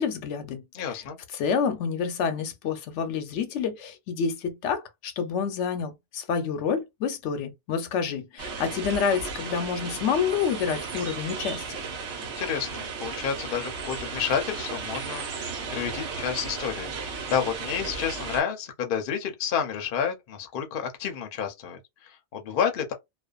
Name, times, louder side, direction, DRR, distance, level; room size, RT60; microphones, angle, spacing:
voice 1, 0.0-0.6 0.9-1.0 1.3-11.7, left 6 dB, 85° left, 0.9 m, -28 dB
voice 2, 0.7-1.2 12.2-22.9, left 7 dB, 55° left, 0.7 m, -30 dB
sound 1, 8.4-18.4, right 5 dB, 75° right, 1.1 m, -35 dB
2.5 x 2.2 x 2.2 m
omnidirectional pair, 1.2 m